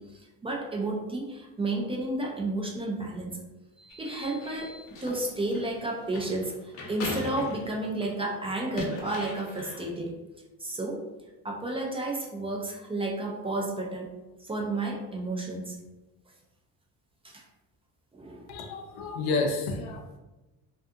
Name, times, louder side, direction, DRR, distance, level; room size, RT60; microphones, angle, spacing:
voice 1, 0.0-3.4 3.8-10.1 10.6-11.0 11.4-14.1 14.4-15.8 17.2-17.4 18.1-18.5, right 2 dB, 15° right, -1 dB, 0.4 m, -32 dB
sound 1, 3.9-8.2 8.6-9.9, left 2 dB, 40° left, 0.6 m, -39 dB
voice 2, 18.5-20.2, left 3 dB, 90° left, 3 dB, 0.6 m, -30 dB
2.4 x 2.3 x 2.6 m, 1.1 s
cardioid pair, 120°, 35 cm